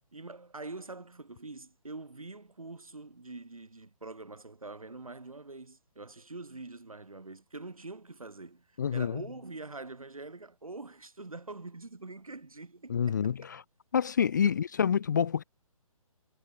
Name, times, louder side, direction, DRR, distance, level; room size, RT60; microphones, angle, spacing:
voice 1, 0.1-13.5 14.4-14.5, right 3 dB, 70° right, 4.1 m, -45 dB
voice 2, 8.8-9.2 12.9-13.6 13.9-15.4, left 7 dB, 30° left, 0.4 m, -27 dB
figure-of-eight pair, 140°, 18 cm